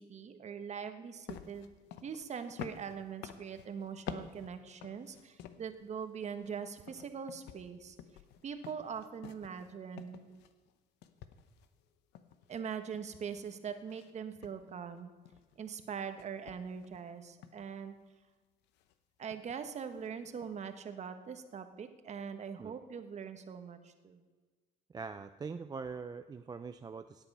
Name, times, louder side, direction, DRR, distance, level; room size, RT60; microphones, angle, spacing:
voice 1, 0.0-1.7 2.0-8.0 8.4-10.3 12.5-15.1 15.6-18.0 19.2-24.2, right 7 dB, 40° right, 8 dB, 1.3 m, -42 dB
sound 1, 1.3-5.8 6.2-10.8 11.0-13.4 13.9-14.1 14.4-15.8 16.2-17.0 17.4-17.7 18.7-18.9 19.3-19.7 20.0-20.1 20.4-20.8, left 10 dB, 85° left, 0.9 m, -50 dB
voice 2, 24.9-27.2, right 5 dB, 25° right, 9 dB, 0.4 m, -43 dB
17.0 x 8.8 x 5.5 m, 1.4 s
cardioid pair, 110°, 17 cm